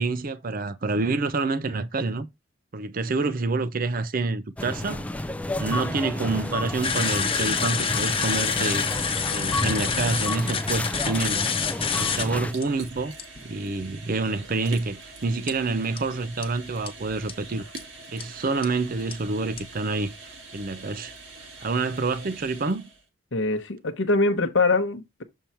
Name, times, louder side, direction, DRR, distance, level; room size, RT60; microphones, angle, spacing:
voice 1, 0.0-2.3 2.7-5.0 5.5-8.8 9.3-11.5 12.0-13.1 13.4-17.6 18.1-21.1 21.6-22.9, right 3 dB, 45° right, 0.6 m, -27 dB
Supermarket Ambience, 4.6-12.5, left 1 dB, 5° left, 0.3 m, -31 dB
sound 1, 4.9-23.1, right 3 dB, 75° right, 1.8 m, -44 dB
sound 2, 6.8-12.2 12.6-12.7 13.2-13.4 15.5-15.6 16.0-16.1 16.4-16.5 16.9-17.0 17.3-17.4 17.8-17.9 18.2-18.3 18.6-18.7 19.1-19.2 19.6-19.7, left 6 dB, 30° left, 0.9 m, -27 dB
voice 2, 23.3-25.2, left 3 dB, 65° left, 0.9 m, -23 dB
7.0 x 3.7 x 4.3 m
head